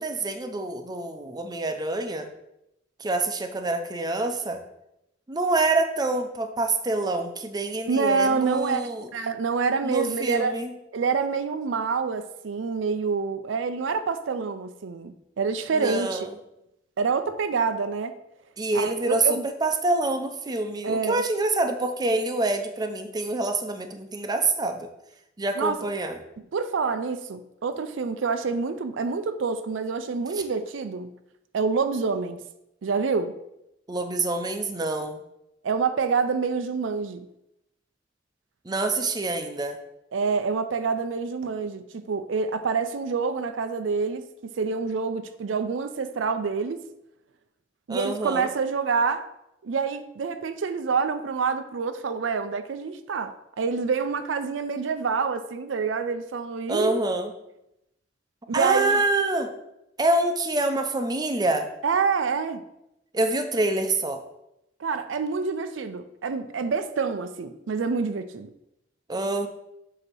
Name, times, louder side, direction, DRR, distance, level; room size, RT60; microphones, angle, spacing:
voice 1, 0.0-2.3 3.0-4.6 5.3-9.1 9.8-10.7 15.7-16.3 18.6-24.9 25.4-26.2 33.9-35.2 38.7-39.8 47.9-48.5 56.7-57.3 58.5-59.5 60.0-61.7 63.1-64.2 69.1-69.5, right 2 dB, 20° right, 0.6 m, -26 dB
voice 2, 7.9-10.6 10.9-16.3 17.0-18.2 18.7-19.4 20.8-21.2 25.6-25.8 26.5-31.1 31.5-32.4 32.8-33.3 35.6-37.3 40.1-46.9 47.9-49.3 49.6-57.0 58.5-59.0 61.8-62.6 64.8-68.5, right 5 dB, 85° right, 0.5 m, -27 dB
7.8 x 2.8 x 6.1 m
head